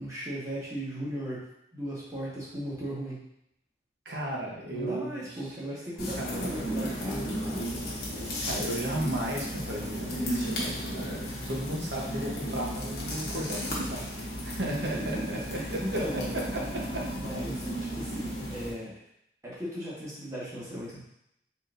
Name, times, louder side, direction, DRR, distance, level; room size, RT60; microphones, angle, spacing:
voice 1, 0.0-1.4 1.7-3.2 4.7-7.8 14.8-16.3 17.1-18.9 19.4-21.0, equal, 20° right, -8 dB, 1.4 m, -37 dB
voice 2, 4.0-5.3 6.2-6.5 8.4-16.0 16.5-17.0, right 1 dB, 70° right, -3 dB, 1.0 m, -35 dB
Burning Paper (Xlr), 6.0-18.7, equal, 55° left, 1.0 m, -34 dB
4.0 x 3.8 x 2.6 m, 0.76 s
head